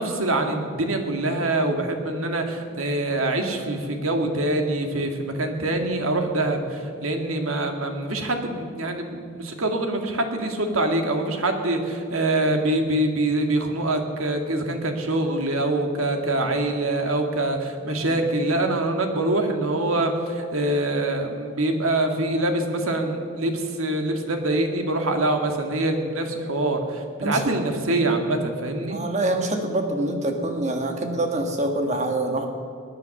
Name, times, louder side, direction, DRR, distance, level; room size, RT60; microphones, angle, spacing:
voice 1, 0.0-29.0, right 2 dB, 85° right, 5 dB, 2.0 m, -24 dB
voice 2, 27.2-27.5 28.9-32.5, right 1 dB, 35° right, 5 dB, 1.6 m, -25 dB
19.5 x 9.6 x 6.6 m, 2.4 s
head